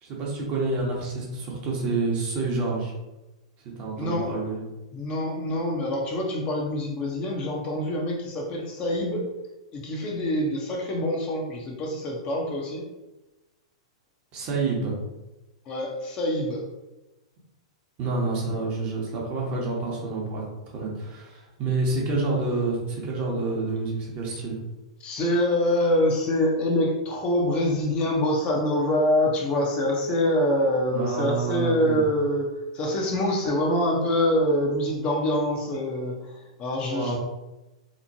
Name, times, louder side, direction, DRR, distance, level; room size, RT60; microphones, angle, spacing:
voice 1, 0.0-2.9 3.8-4.6 14.3-14.9 18.0-24.6 30.9-32.1 36.9-37.2, right 3 dB, 40° right, -3 dB, 0.9 m, -28 dB
voice 2, 4.0-4.3 4.9-9.2 9.7-12.8 15.7-16.6 25.0-32.5 32.7-37.2, left 1 dB, 35° left, -1 dB, 0.7 m, -25 dB
2.9 x 2.1 x 2.7 m, 1.0 s
hypercardioid pair, 110°, 3 cm